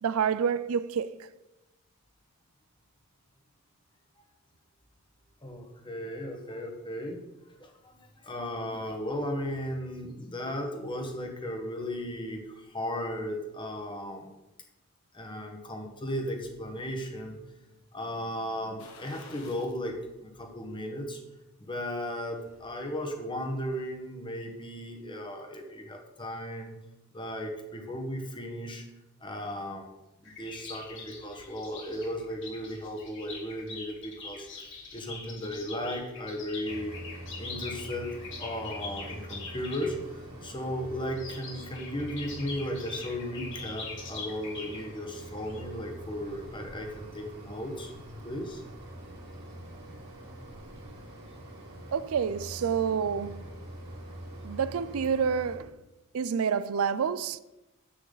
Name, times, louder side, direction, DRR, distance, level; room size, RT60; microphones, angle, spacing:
voice 1, 0.0-1.2 51.9-53.4 54.4-55.7 56.1-57.4, right 6 dB, 75° right, 0.4 m, -28 dB
voice 2, 5.4-7.2 7.6-8.0 8.2-14.3 15.1-17.4 17.9-20.0 20.2-21.2 21.6-26.7 27.1-28.9 29.2-29.8 30.2-37.0 37.4-38.1 38.4-47.9 48.2-48.6, equal, 20° left, 1.4 m, -36 dB
sound 1, 18.8-19.9 20.3-20.4 21.9-22.7 23.0-23.1, left 3 dB, 75° left, 1.6 m, -51 dB
sound 2, 30.2-39.9 41.1-45.6, left 4 dB, 55° left, 2.8 m, -43 dB
Mechanisms, 36.6-55.6, right 1 dB, 50° right, 2.8 m, -45 dB
10.0 x 8.4 x 4.0 m
head